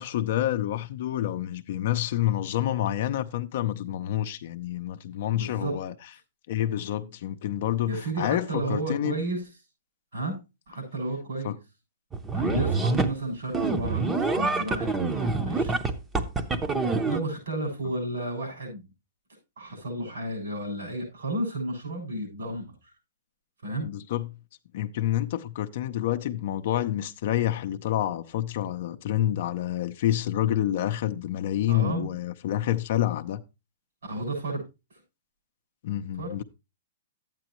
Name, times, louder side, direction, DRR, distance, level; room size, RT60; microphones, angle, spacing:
voice 1, 0.0-5.9 6.5-9.2 11.4-11.6 12.5-12.9 23.8-24.3 24.7-33.4 35.8-36.4, left 12 dB, 55° left, 0.6 m, -28 dB
voice 2, 5.3-5.8 7.9-9.4 10.1-10.4 10.7-11.5 12.3-15.8 17.1-18.9 19.6-22.7 23.6-23.9 31.7-32.1 34.0-34.6 34.9-35.0 36.2-36.3, right 2 dB, 85° right, 7.1 m, -32 dB
sound 1, 12.1-13.1 13.5-17.2, right 3 dB, 15° right, 0.7 m, -26 dB
11.5 x 9.0 x 3.0 m
hypercardioid pair, 145°, 0 cm